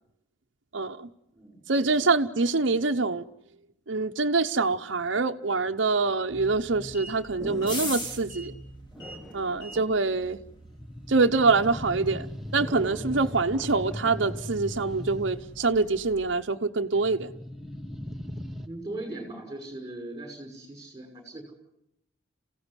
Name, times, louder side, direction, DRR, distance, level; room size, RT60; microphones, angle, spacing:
voice 1, 0.7-1.1 1.7-3.2 3.9-8.5 9.3-10.4 11.1-12.3 12.5-17.3, right 3 dB, 70° right, 0.8 m, -25 dB
voice 2, 1.3-2.1 13.4-13.5 18.6-21.5, right 2 dB, 15° right, 5.9 m, -40 dB
sound 1, 6.3-16.3, left 1 dB, 25° left, 4.1 m, -43 dB
sound 2, 7.4-8.1 9.0-9.9 10.7-15.6 16.9-18.7, equal, ahead, 1.1 m, -38 dB
28.0 x 16.5 x 9.8 m
head